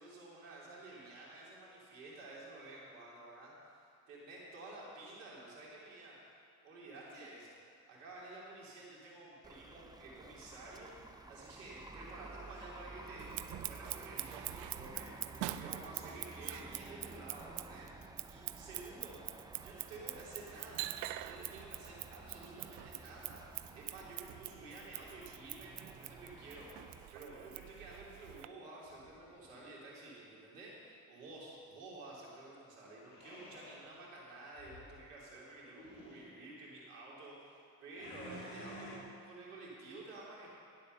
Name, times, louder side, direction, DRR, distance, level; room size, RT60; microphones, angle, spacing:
voice 1, 0.0-6.2 6.6-7.6 7.9-19.2 19.6-20.9 21.2-40.5, right 2 dB, 80° right, -4 dB, 3.2 m, -51 dB
sound 1, 9.4-27.1, right 2 dB, 10° right, 0.6 m, -53 dB
Scissors, 13.2-28.5, right 16 dB, 60° right, 0.6 m, -45 dB
sound 2, 28.8-29.7 33.1-33.9 34.5-35.0 35.6-36.3 37.9-39.0, left 1 dB, 60° left, 2.5 m, -52 dB
10.5 x 8.4 x 6.6 m, 2.4 s
hypercardioid pair, 60°, 45 cm